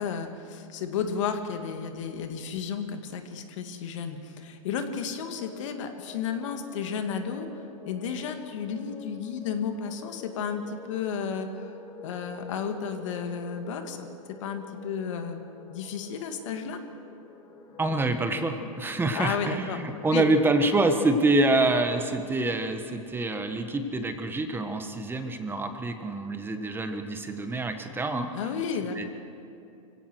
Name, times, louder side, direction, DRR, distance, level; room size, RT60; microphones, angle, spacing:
voice 1, 0.0-7.5 7.9-11.7 12.0-14.1 14.4-15.4 15.7-16.8 19.1-19.8 20.1-20.2 28.3-29.1, left 6 dB, 65° left, 6 dB, 2.2 m, -32 dB
sound 1, 5.2-22.5, left 4 dB, 25° left, 2.6 m, -48 dB
voice 2, 17.8-28.3 28.9-29.0, right 2 dB, 10° right, 7 dB, 1.5 m, -26 dB
24.5 x 16.5 x 6.3 m, 2.6 s
hypercardioid pair, 115°, 17 cm